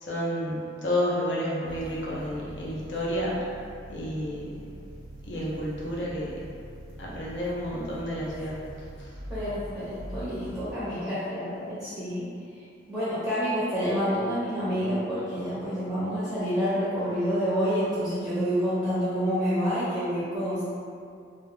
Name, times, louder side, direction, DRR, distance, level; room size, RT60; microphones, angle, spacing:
voice 1, 0.0-3.4 3.9-4.7 5.2-6.4 7.0-8.6 9.0-9.1 10.8-10.9, equal, 65° left, -6 dB, 0.6 m, -30 dB
sound 1, 1.7-10.8, right 1 dB, 75° right, 0.5 m, -43 dB
voice 2, 9.3-12.3 12.9-20.6, equal, ahead, -13 dB, 0.6 m, -28 dB
2.3 x 2.1 x 3.2 m, 2.4 s
head